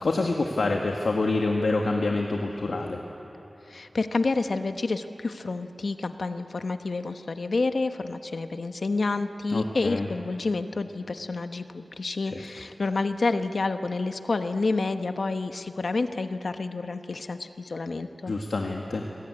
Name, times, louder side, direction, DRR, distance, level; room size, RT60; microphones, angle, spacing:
voice 1, 0.0-3.0 9.5-10.1 12.3-12.4 18.3-19.0, left 3 dB, 90° left, 1 dB, 1.8 m, -26 dB
voice 2, 3.7-18.3, left 3 dB, 70° left, 8 dB, 1.0 m, -29 dB
28.0 x 21.5 x 9.7 m, 3.0 s
wide cardioid pair, 75°, 0 cm